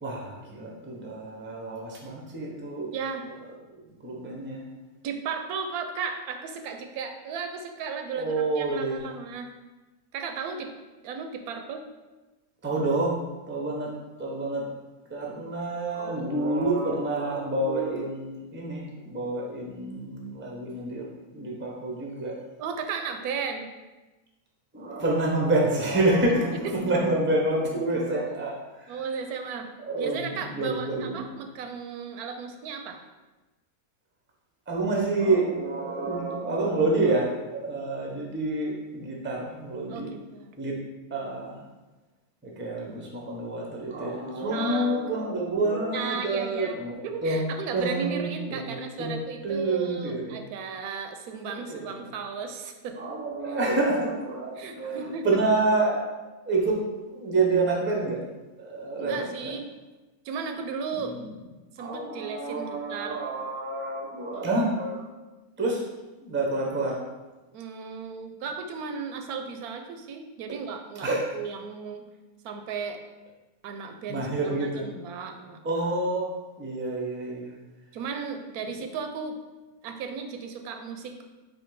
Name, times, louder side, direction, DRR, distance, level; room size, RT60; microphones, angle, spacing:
voice 1, 0.0-2.9 4.0-4.6 8.1-9.1 12.6-13.9 14.2-14.7 15.1-21.1 21.3-22.3 24.7-29.0 29.8-31.3 34.7-40.1 40.6-40.7 41.1-41.6 42.4-46.9 47.2-50.4 51.5-52.1 53.0-56.1 56.5-56.8 57.1-58.2 58.6-59.5 61.0-61.3 61.8-65.1 65.6-65.8 66.2-67.0 71.0-71.4 74.1-74.9 75.6-76.3 76.6-77.5, right 2 dB, 15° right, -1 dB, 0.4 m, -28 dB
voice 2, 2.9-3.3 5.0-9.5 10.1-10.7 11.0-11.8 22.6-23.7 26.5-26.6 28.9-29.7 30.0-33.0 39.9-40.5 44.5-45.0 45.9-53.1 53.5-53.6 54.6-55.4 59.0-59.7 60.2-61.2 61.7-63.2 64.3-64.6 67.5-72.0 72.4-73.0 73.6-75.6 77.9-79.4 79.8-81.2, right 5 dB, 85° right, 6 dB, 1.1 m, -35 dB
4.2 x 2.7 x 4.6 m, 1.1 s
omnidirectional pair, 1.5 m